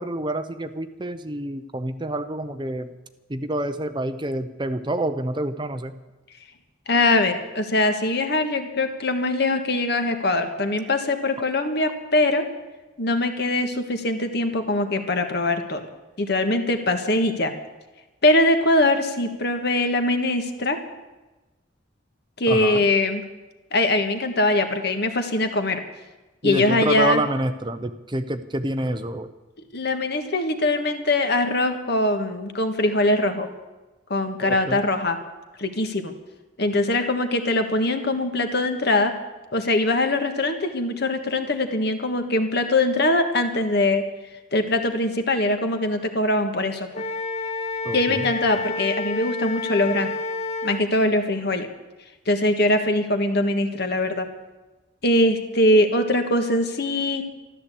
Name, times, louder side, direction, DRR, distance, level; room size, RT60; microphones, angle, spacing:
voice 1, 0.0-2.9 3.3-5.9 22.5-22.8 26.4-29.3 34.4-34.8 47.8-48.3, right 1 dB, 25° right, 10 dB, 0.6 m, -27 dB
voice 2, 6.9-12.4 13.0-15.9 16.2-17.5 18.2-20.8 22.4-23.2 23.7-25.8 26.4-27.2 29.7-33.5 34.1-35.2 35.6-36.1 36.6-39.1 39.5-44.0 44.5-46.9 47.9-50.1 50.6-51.7 52.3-54.3 55.0-57.3, left 2 dB, 55° left, 7 dB, 1.5 m, -22 dB
Wind instrument woodwind instrument, 46.9-50.8, left 3 dB, 35° left, 0.7 m, -29 dB
13.5 x 12.0 x 8.4 m, 1.1 s
head